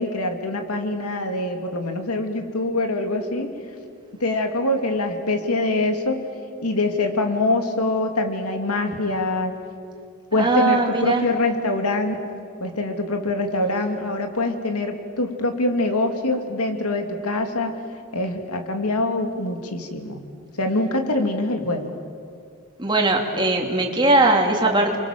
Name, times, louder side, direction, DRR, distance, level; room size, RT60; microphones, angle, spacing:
voice 1, 0.0-3.5 4.2-6.2 6.6-9.5 10.3-12.2 12.6-17.7 18.1-20.2 20.6-21.9, left 2 dB, 85° left, 5 dB, 2.6 m, -24 dB
voice 2, 10.3-11.2 22.8-25.0, right 2 dB, 20° right, 1 dB, 2.7 m, -20 dB
30.0 x 23.5 x 7.5 m, 2.3 s
head